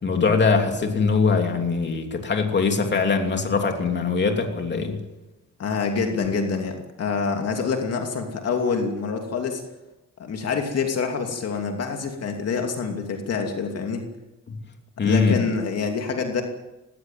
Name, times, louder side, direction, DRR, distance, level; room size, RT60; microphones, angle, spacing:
voice 1, 0.0-5.0 14.5-14.6 15.0-15.5, left 4 dB, 40° left, 4 dB, 3.0 m, -22 dB
voice 2, 5.6-9.6 10.2-14.0 15.0-16.4, left 5 dB, 60° left, 3 dB, 2.8 m, -26 dB
19.0 x 18.0 x 9.3 m, 1.0 s
cardioid pair, 130°, 29 cm